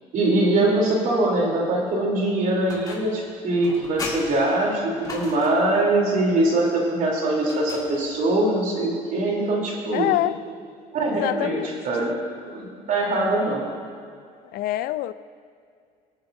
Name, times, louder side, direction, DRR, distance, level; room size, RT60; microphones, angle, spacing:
voice 1, 0.1-10.1 10.9-12.1 12.5-13.6, right 2 dB, 60° right, -2 dB, 3.2 m, -22 dB
sound 1, 2.7-3.2 3.6-5.7 7.4-8.3, left 3 dB, 25° left, 2.7 m, -37 dB
voice 2, 9.9-10.3 11.2-11.7 14.5-15.1, left 15 dB, 70° left, 15 dB, 0.4 m, -25 dB
23.0 x 8.2 x 2.6 m, 2.3 s
supercardioid pair, 95°, 16 cm